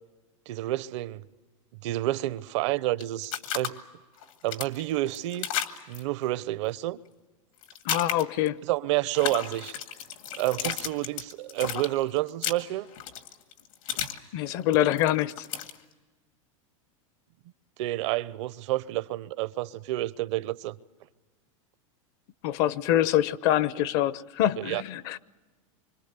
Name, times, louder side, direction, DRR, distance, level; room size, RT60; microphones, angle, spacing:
voice 1, 0.5-1.2 1.8-3.8 4.4-5.5 5.9-7.0 8.7-9.7 10.3-12.9 17.8-20.8 24.6-24.8, right 16 dB, 60° right, 0.7 m, -29 dB
sound 1, 3.0-3.7 4.2-6.0 7.6-8.5 9.1-14.2 14.5-15.8, left 10 dB, 80° left, 2.1 m, -33 dB
voice 2, 7.8-8.6 14.3-15.5 22.4-25.2, left 12 dB, 50° left, 0.7 m, -25 dB
25.5 x 25.5 x 6.8 m
supercardioid pair, 145°, 17 cm